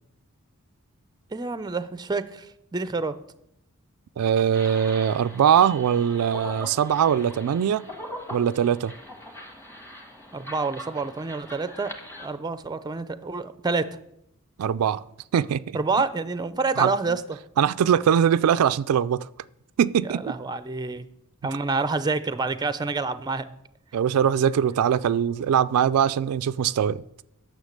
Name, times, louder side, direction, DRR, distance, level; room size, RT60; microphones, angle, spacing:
voice 1, 1.3-3.2 10.3-11.9 12.2-13.8 15.7-17.4 20.0-21.0 21.4-23.5, right 3 dB, 20° right, 0.4 m, -28 dB
voice 2, 4.2-7.8 8.3-8.9 14.6-15.0 15.3-15.6 16.8-16.9 17.6-19.3 19.8-20.3 23.9-27.0, right 8 dB, 80° right, 0.3 m, -21 dB
sound 1, 4.5-12.3, equal, 10° left, 1.4 m, -41 dB
9.6 x 6.7 x 6.5 m
head